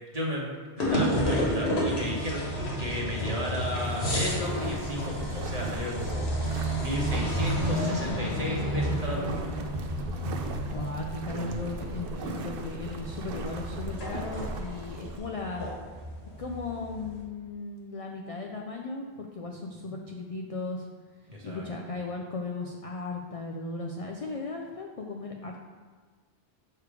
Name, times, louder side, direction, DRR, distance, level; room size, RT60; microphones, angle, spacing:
voice 1, 0.1-0.5 0.8-2.4 2.8-6.3 6.8-9.5 12.2-12.4 21.3-21.7, equal, 40° right, -3 dB, 1.2 m, -33 dB
sound 1, 0.8-17.2, equal, 80° left, 1.5 m, -31 dB
sound 2, 3.8-15.2, right 3 dB, 65° right, 0.7 m, -39 dB
voice 2, 10.7-15.7 16.4-20.8 21.4-25.6, left 3 dB, 50° left, 1 dB, 0.4 m, -36 dB
6.6 x 3.3 x 4.8 m, 1.5 s
omnidirectional pair, 1.1 m